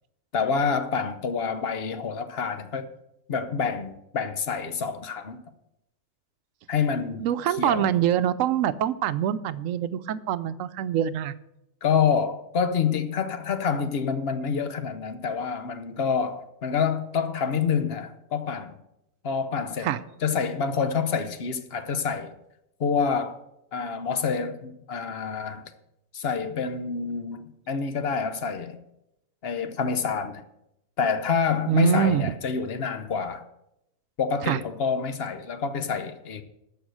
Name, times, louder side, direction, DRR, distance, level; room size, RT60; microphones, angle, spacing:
voice 1, 0.3-2.9 3.3-5.4 6.7-7.3 7.6-7.9 11.8-18.8 19.2-19.9 20.2-22.3 22.8-23.4 23.7-25.6 26.1-28.8 29.4-30.4 31.0-33.4 34.2-36.4, left 6 dB, 50° left, 1.0 m, -27 dB
voice 2, 7.2-11.3 19.8-20.0 31.7-32.3 34.5-34.6, right 10 dB, 80° right, 1.0 m, -24 dB
13.5 x 4.8 x 7.7 m
omnidirectional pair, 1.4 m